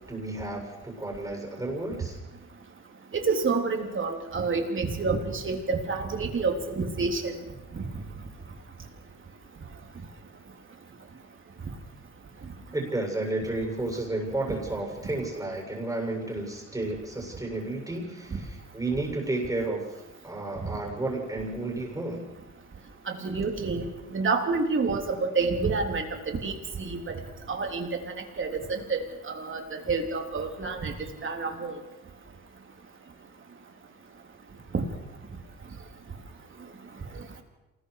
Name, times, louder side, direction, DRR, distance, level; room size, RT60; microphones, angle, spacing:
voice 1, 0.1-2.2 12.7-19.9 20.2-22.3, right 2 dB, 10° right, 0 dB, 7.4 m, -32 dB
voice 2, 3.1-7.4 7.7-7.9 23.1-27.2 27.5-28.0 28.4-30.9 31.2-31.8 34.7-34.8, right 4 dB, 40° right, 3 dB, 3.6 m, -28 dB
27.5 x 20.5 x 5.0 m, 1.0 s
cardioid pair, 90°, 30 cm